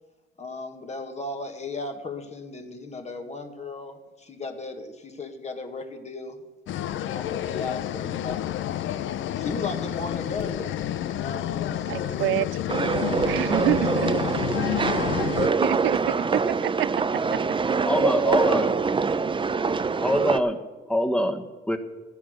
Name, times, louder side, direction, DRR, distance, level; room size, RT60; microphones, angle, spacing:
voice 1, 0.4-6.4 7.1-8.4 9.4-12.2, left 3 dB, 35° left, 1.7 m, -36 dB
sound 1, 6.7-15.5, left 11 dB, 75° left, 0.6 m, -29 dB
voice 2, 11.9-12.6 13.3-14.1 15.6-17.6, right 16 dB, 85° right, 0.5 m, -28 dB
sound 2, 12.7-20.4, right 4 dB, 25° right, 0.6 m, -24 dB
voice 3, 17.9-18.7 20.0-20.6 20.9-21.8, left 1 dB, 5° left, 1.4 m, -24 dB
13.5 x 10.5 x 6.6 m
cardioid pair, 90°, 20 cm